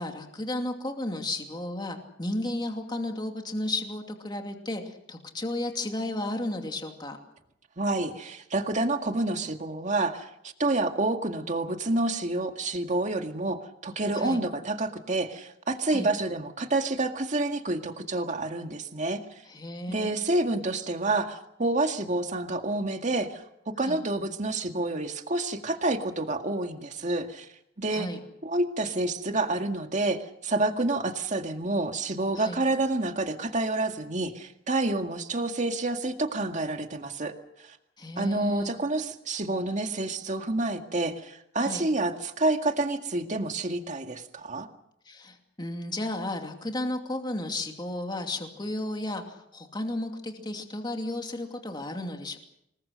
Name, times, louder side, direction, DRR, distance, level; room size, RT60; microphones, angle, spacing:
voice 1, 0.0-7.2 14.1-14.4 15.9-16.1 19.5-20.1 23.9-24.0 27.9-28.2 32.3-32.6 38.0-38.7 41.6-41.9 45.0-52.4, left 1 dB, 25° left, 3 dB, 2.6 m, -33 dB
voice 2, 7.8-19.2 19.9-27.5 27.8-28.1 28.4-37.3 38.2-44.7, right 2 dB, 40° right, 5 dB, 2.0 m, -28 dB
26.5 x 20.5 x 6.5 m, 0.78 s
head